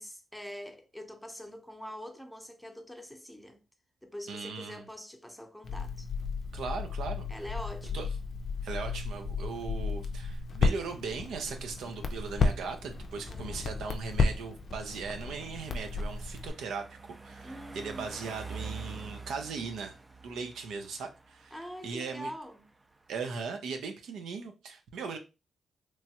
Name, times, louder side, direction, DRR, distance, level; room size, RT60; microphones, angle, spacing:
voice 1, 0.0-3.6 4.0-6.1 7.3-8.1 13.3-13.6 17.4-18.7 21.5-22.6, equal, 5° left, 0.7 m, -44 dB
voice 2, 4.3-4.9 6.5-7.3 7.9-8.1 8.6-19.9 20.2-21.6 21.8-22.3 23.1-25.2, right 5 dB, 85° right, 0.5 m, -38 dB
Crackle, 5.6-16.5, left 4 dB, 65° left, 0.4 m, -33 dB
sound 1, 12.7-23.5, right 4 dB, 25° right, 0.3 m, -48 dB
3.0 x 2.2 x 2.8 m
cardioid pair, 65°, 0 cm